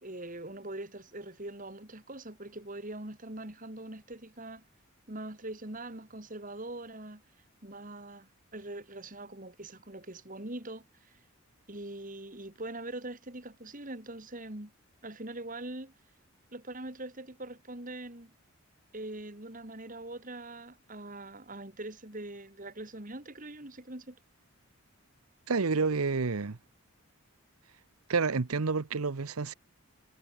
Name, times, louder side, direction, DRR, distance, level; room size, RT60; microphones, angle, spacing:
voice 1, 0.0-4.6 5.1-7.2 7.6-10.8 11.7-14.7 15.0-15.9 16.5-18.3 18.9-24.2, right 2 dB, 40° right, 3.0 m, -42 dB
voice 2, 25.5-26.6 28.1-29.5, right 4 dB, 90° right, 0.9 m, -29 dB
head